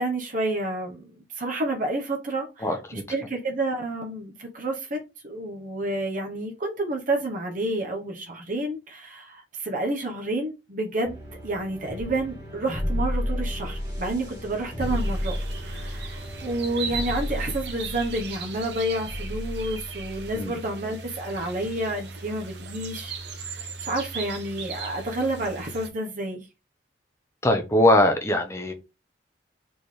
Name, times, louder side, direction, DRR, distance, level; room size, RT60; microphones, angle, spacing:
voice 1, 0.0-2.6 3.1-15.4 15.6-23.1 23.4-26.5, right 1 dB, 50° right, 1.0 m, -30 dB
voice 2, 2.6-3.0 20.3-20.5 27.4-28.7, left 1 dB, 15° left, 0.8 m, -21 dB
sound 1, 11.0-20.5, equal, 25° right, 1.7 m, -32 dB
sound 2, 14.8-25.9, right 4 dB, 70° right, 0.8 m, -38 dB
4.4 x 3.6 x 3.2 m
head